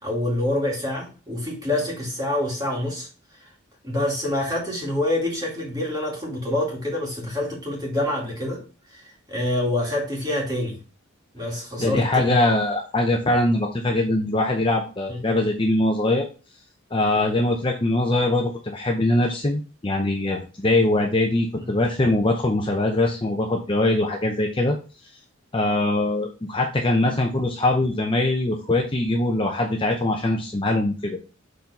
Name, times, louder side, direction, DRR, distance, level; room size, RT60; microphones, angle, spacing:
voice 1, 0.0-3.1 3.8-8.6 8.9-9.0 9.3-10.8 11.3-12.3 15.1-15.2 17.1-17.3 21.6-21.7, left 1 dB, 15° right, -2 dB, 2.2 m, -26 dB
voice 2, 11.8-16.3 16.9-24.8 25.5-31.2, left 2 dB, 25° left, 2 dB, 0.6 m, -22 dB
6.7 x 3.9 x 4.1 m, 0.34 s
head